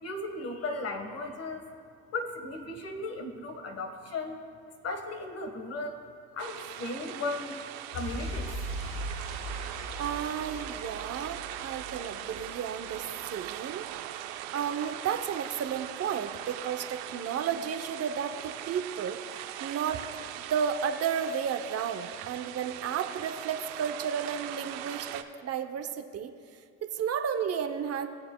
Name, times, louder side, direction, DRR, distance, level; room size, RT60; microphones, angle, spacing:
voice 1, 0.0-1.6 2.1-4.4 4.8-6.0 6.3-7.6 7.9-8.5, left 2 dB, 45° left, 5 dB, 1.5 m, -36 dB
sound 1, 6.4-25.2, right 12 dB, 85° right, 0.6 m, -40 dB
sound 2, 7.9-14.4 14.7-14.8, equal, 70° left, 1.8 m, -40 dB
voice 2, 10.0-13.9 14.5-19.2 19.6-20.0 20.5-26.3 26.8-28.1, right 7 dB, 45° right, 6 dB, 0.8 m, -32 dB
20.0 x 7.3 x 2.3 m, 2.1 s
supercardioid pair, 80°, 34 cm